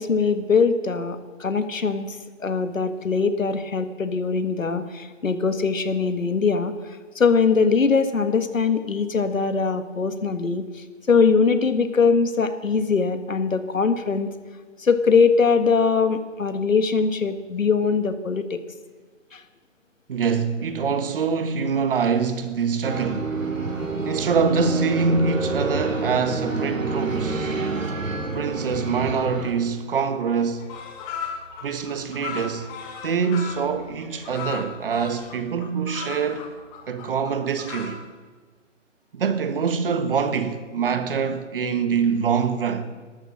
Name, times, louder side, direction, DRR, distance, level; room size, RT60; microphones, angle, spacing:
voice 1, 0.0-6.7 7.2-14.3 14.8-18.6 19.3-19.4, left 5 dB, 90° left, 1.7 m, -22 dB
voice 2, 20.1-23.4 24.0-27.6 28.3-30.7 31.6-32.7 33.0-36.5 36.9-38.0 39.1-42.9, right 5 dB, 45° right, 1.5 m, -24 dB
sound 1, 22.8-29.5, right 3 dB, 90° right, 3.1 m, -28 dB
sound 2, 30.4-37.9, left 7 dB, 15° left, 1.6 m, -37 dB
13.5 x 13.0 x 7.6 m
hypercardioid pair, 155°, 38 cm